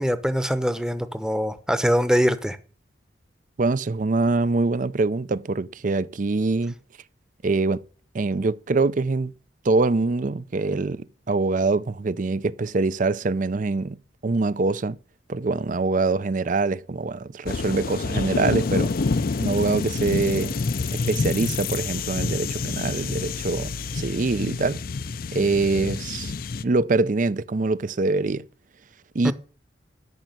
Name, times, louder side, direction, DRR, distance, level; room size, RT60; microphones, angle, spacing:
voice 1, 0.0-2.6 29.2-29.3, equal, 5° right, 0.9 m, -23 dB
voice 2, 3.6-6.7 7.4-7.8 8.1-9.3 9.6-14.0 14.2-15.0 15.3-18.9 19.4-20.5 20.9-24.8 25.3-26.3 26.6-28.4 29.1-29.3, right 3 dB, 45° right, 0.5 m, -24 dB
sound 1, 17.5-26.6, left 4 dB, 50° left, 0.5 m, -27 dB
13.0 x 6.0 x 9.4 m
head